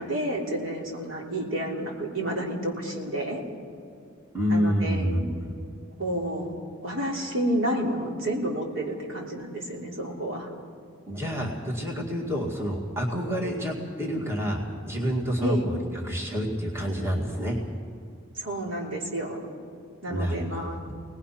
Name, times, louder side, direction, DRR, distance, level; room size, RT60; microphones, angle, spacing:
voice 1, 0.0-3.4 4.5-5.1 6.0-6.5 6.8-10.5 15.4-15.7 18.4-19.4 20.0-20.8, right 1 dB, 70° right, -2 dB, 3.5 m, -30 dB
voice 2, 4.3-5.5 11.1-15.8 16.0-17.6 20.1-20.4 20.9-21.0, equal, 10° right, -2 dB, 2.0 m, -28 dB
24.0 x 19.5 x 5.8 m, 2.6 s
head